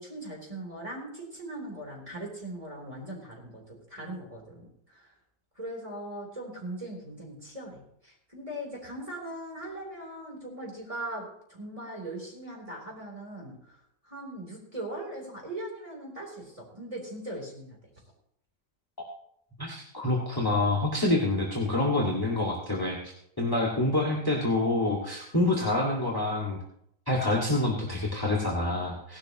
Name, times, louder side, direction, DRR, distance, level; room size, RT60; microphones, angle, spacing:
voice 1, 0.0-5.1 5.6-17.8, right 1 dB, 20° right, -1 dB, 3.6 m, -40 dB
voice 2, 19.6-26.6 27.1-29.2, left 2 dB, 10° left, -2 dB, 2.0 m, -27 dB
17.0 x 12.0 x 3.0 m, 0.72 s
omnidirectional pair, 1.8 m